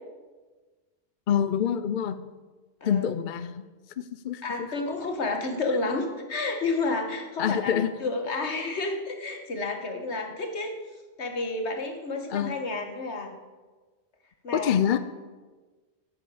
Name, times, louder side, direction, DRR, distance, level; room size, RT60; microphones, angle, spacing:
voice 1, 1.3-2.2 2.8-3.6 4.0-4.7 7.4-7.9 8.3-8.4 12.3-12.6 14.5-15.0, left 8 dB, 55° left, 13 dB, 0.6 m, -26 dB
voice 2, 4.4-7.7 8.0-10.7 11.2-13.3 14.4-15.0, left 3 dB, 80° left, 4 dB, 1.9 m, -30 dB
10.5 x 9.1 x 7.8 m, 1.3 s
omnidirectional pair, 1.1 m